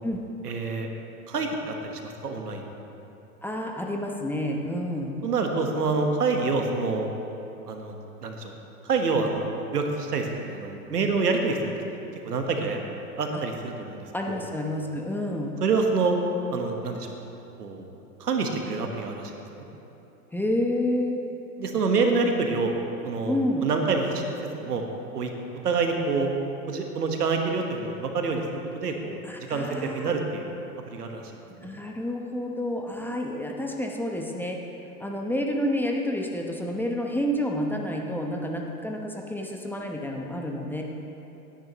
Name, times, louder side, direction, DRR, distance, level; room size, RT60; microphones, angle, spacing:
voice 1, 0.4-0.9 1.3-2.7 5.2-7.1 7.7-8.5 8.8-11.6 12.2-12.8 13.2-14.4 15.6-16.2 16.5-17.2 17.6-17.9 18.2-19.7 21.6-22.7 23.0-24.2 24.6-24.8 25.1-25.3 25.6-26.3 26.7-29.2 29.5-30.5 30.9-31.2 31.6-31.7, right 4 dB, 85° right, 3 dB, 1.5 m, -27 dB
voice 2, 3.4-5.1 14.1-15.5 20.3-21.2 23.2-23.7 29.2-30.1 31.6-34.6 35.0-40.8, left 1 dB, 5° left, 0 dB, 0.9 m, -29 dB
18.0 x 10.0 x 3.1 m, 2.9 s
hypercardioid pair, 105°, 46 cm